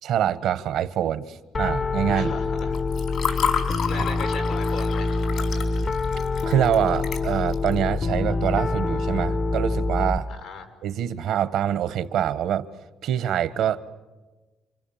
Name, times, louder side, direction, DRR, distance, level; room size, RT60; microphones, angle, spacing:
voice 1, 0.0-2.4 6.4-10.3 10.8-12.7 13.0-13.9, right 10 dB, 80° right, 14 dB, 1.1 m, -25 dB
Piano, 1.5-10.2, left 3 dB, 45° left, 0.8 m, -26 dB
voice 2, 2.1-2.7 3.9-5.2 10.3-10.7, left 4 dB, 90° left, 7 dB, 5.3 m, -37 dB
Water / Fill (with liquid), 2.6-7.7, left 7 dB, 70° left, 4.9 m, -30 dB
29.0 x 25.5 x 7.2 m, 1.2 s
cardioid pair, 90°, 0 cm